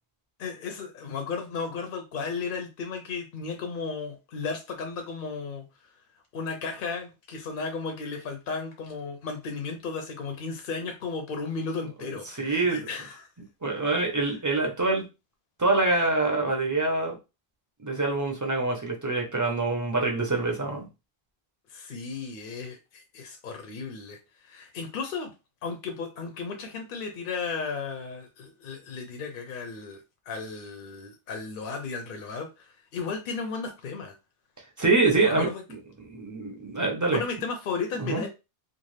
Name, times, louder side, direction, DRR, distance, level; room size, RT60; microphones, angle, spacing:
voice 1, 0.4-5.7 6.3-13.3 14.2-14.4 21.7-24.2 24.4-25.3 25.6-34.1 35.2-35.6 37.1-38.3, left 4 dB, 65° left, 4 dB, 0.7 m, -34 dB
voice 2, 12.4-12.8 13.6-15.0 15.6-17.2 17.8-20.9 34.8-35.5 36.1-37.2 38.0-38.2, right 3 dB, 20° right, 1 dB, 0.6 m, -25 dB
2.6 x 2.3 x 3.2 m, 0.27 s
omnidirectional pair, 1.0 m